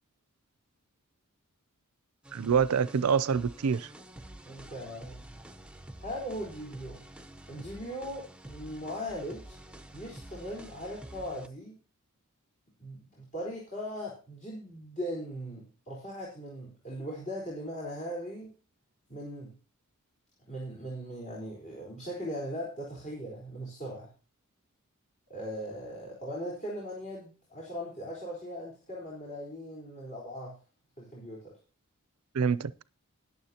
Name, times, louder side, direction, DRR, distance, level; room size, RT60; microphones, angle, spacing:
sound 1, 2.2-11.5, right 1 dB, 5° right, 0.8 m, -48 dB
voice 1, 2.3-3.9 32.3-32.8, right 6 dB, 80° right, 0.5 m, -26 dB
voice 2, 4.4-5.2 6.0-7.0 7.5-9.5 9.9-11.8 12.8-18.5 19.1-19.5 20.5-24.1 25.3-30.6 31.0-31.5, equal, 40° left, 4.2 m, -39 dB
21.0 x 7.1 x 2.9 m
head